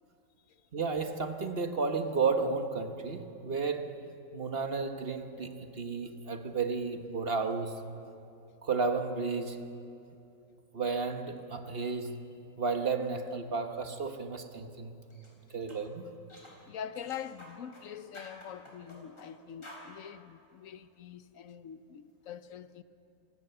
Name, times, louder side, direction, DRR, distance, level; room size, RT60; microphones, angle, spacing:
voice 1, 0.7-3.9 4.3-7.8 8.6-9.6 10.7-12.2 12.6-15.0 15.5-16.0, right 4 dB, 40° right, 1.1 m, -32 dB
sound 1, 15.1-15.3 15.7-15.8 16.3-16.6 16.9-17.9 18.1-19.3 19.6-19.9, left 1 dB, 30° left, 4.4 m, -51 dB
voice 2, 16.7-22.8, left 8 dB, 65° left, 0.9 m, -44 dB
27.5 x 17.0 x 6.8 m
omnidirectional pair, 2.0 m